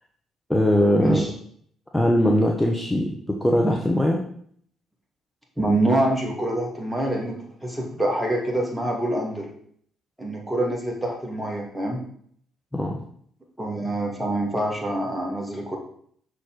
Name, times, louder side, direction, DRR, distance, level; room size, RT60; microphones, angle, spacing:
voice 1, 0.5-1.2 1.9-4.2 12.7-13.0, equal, 10° left, 0 dB, 1.0 m, -20 dB
voice 2, 5.6-9.5 10.2-12.0 13.6-15.8, right 1 dB, 10° right, 0 dB, 2.0 m, -25 dB
6.3 x 4.2 x 3.9 m, 0.62 s
hypercardioid pair, 45°, 0 cm